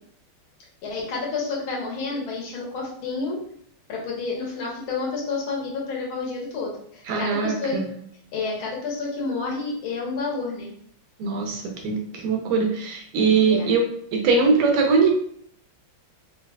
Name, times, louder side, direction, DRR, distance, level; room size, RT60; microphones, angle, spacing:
voice 1, 0.8-3.4 3.9-7.8 8.3-10.7 13.5-13.7, left 4 dB, 70° left, -4 dB, 1.7 m, -29 dB
voice 2, 7.1-7.8 11.2-13.9 14.1-15.1, right 4 dB, 85° right, 2 dB, 1.6 m, -21 dB
4.5 x 2.3 x 2.3 m, 0.64 s
omnidirectional pair, 2.4 m